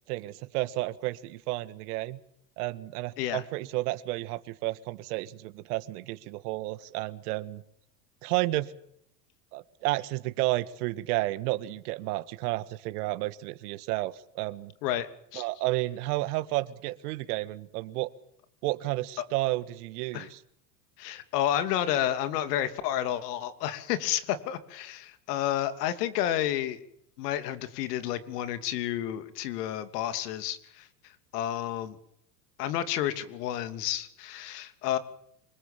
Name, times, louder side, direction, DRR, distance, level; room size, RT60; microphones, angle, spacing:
voice 1, 0.1-2.2 2.6-7.6 8.2-8.7 9.5-14.7 15.3-18.1 18.6-20.4, right 18 dB, 65° right, 13 dB, 1.8 m, -31 dB
voice 2, 14.8-15.4 20.1-20.3 21.0-26.8 27.2-30.9 31.3-32.0 32.6-35.0, left 11 dB, 70° left, 11 dB, 3.0 m, -30 dB
25.0 x 21.0 x 7.4 m, 0.72 s
hypercardioid pair, 105°, 50 cm